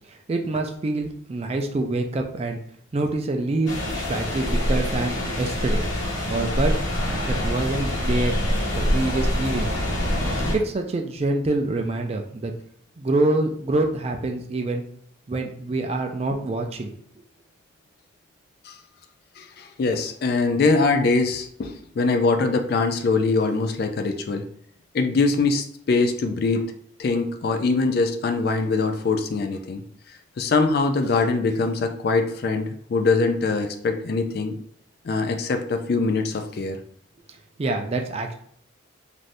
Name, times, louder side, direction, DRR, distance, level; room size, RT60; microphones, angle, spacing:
voice 1, 0.1-2.6 2.9-5.8 6.3-6.8 7.3-8.4 8.7-9.7 10.5-12.5 13.0-14.8 15.3-16.9 37.6-38.3, right 2 dB, 30° right, 4 dB, 0.3 m, -26 dB
sound 1, 3.7-10.6, equal, 80° left, 0.9 m, -25 dB
voice 2, 19.4-24.5 24.9-26.7 27.0-29.8 30.4-34.6 35.0-36.8, left 3 dB, 50° left, 5 dB, 0.3 m, -23 dB
2.6 x 2.6 x 3.2 m, 0.63 s
head